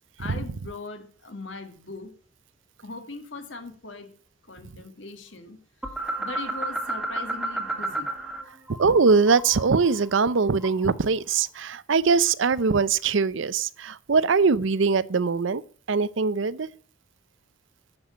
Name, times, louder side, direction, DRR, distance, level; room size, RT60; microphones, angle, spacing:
voice 1, 0.2-2.1 2.8-4.1 4.5-5.6 6.2-8.1, left 3 dB, 70° left, 2.1 m, -39 dB
sound 1, 5.8-8.4 8.7-11.0, right 2 dB, ahead, 1.5 m, -32 dB
voice 2, 8.8-15.6 15.9-16.7, right 4 dB, 70° right, 0.6 m, -22 dB
10.5 x 7.1 x 7.9 m
head